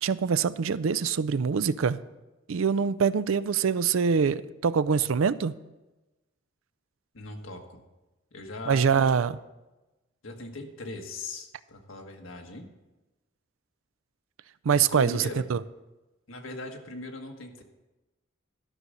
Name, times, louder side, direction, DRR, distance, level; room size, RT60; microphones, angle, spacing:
voice 1, 0.0-2.0 2.5-5.5 8.7-9.4 14.6-15.6, right 6 dB, 80° right, 16 dB, 0.4 m, -24 dB
voice 2, 7.1-7.8 8.3-9.3 10.2-12.7 14.9-15.5 16.3-17.6, left 2 dB, 80° left, 3 dB, 1.5 m, -40 dB
12.5 x 6.3 x 6.6 m, 1.1 s
head